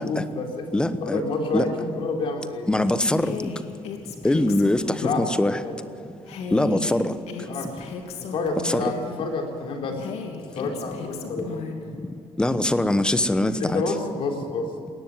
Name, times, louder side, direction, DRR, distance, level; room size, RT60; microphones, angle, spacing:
voice 1, 0.0-0.7 1.0-2.7 5.0-5.3 5.6-5.8 7.5-7.8 8.2-10.0 10.6-11.6 13.6-14.7, left 3 dB, 55° left, 3 dB, 3.6 m, -29 dB
voice 2, 0.7-1.2 1.5-1.7 2.7-3.5 4.2-5.6 6.5-7.1 8.6-8.9 12.4-13.8, left 1 dB, 10° left, 12 dB, 1.0 m, -22 dB
Female speech woman speaking, 3.2-5.3 6.3-9.2 10.0-11.9, left 6 dB, 70° left, 3.0 m, -35 dB
21.0 x 18.0 x 9.6 m, 2.6 s
cardioid pair, 160°, 11 cm